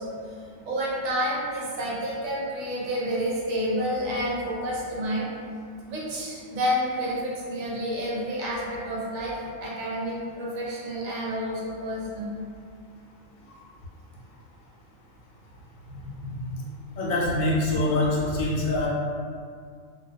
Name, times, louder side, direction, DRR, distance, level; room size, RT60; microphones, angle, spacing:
voice 1, 0.0-5.3 5.9-12.3 15.8-16.6 18.3-18.9, equal, 65° right, -5 dB, 0.9 m, -30 dB
voice 2, 17.0-18.9, left 2 dB, 85° left, -4 dB, 1.0 m, -24 dB
2.2 x 2.2 x 2.7 m, 2.2 s
omnidirectional pair, 1.4 m